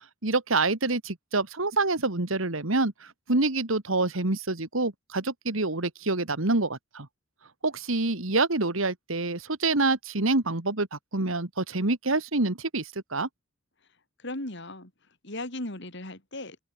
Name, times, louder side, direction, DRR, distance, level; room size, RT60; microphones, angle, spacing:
voice 1, 0.2-7.1 7.6-13.3, right 3 dB, 80° right, 2.3 m, -27 dB
voice 2, 14.2-14.9 15.2-16.6, left 1 dB, 60° left, 6.4 m, -37 dB
open air
head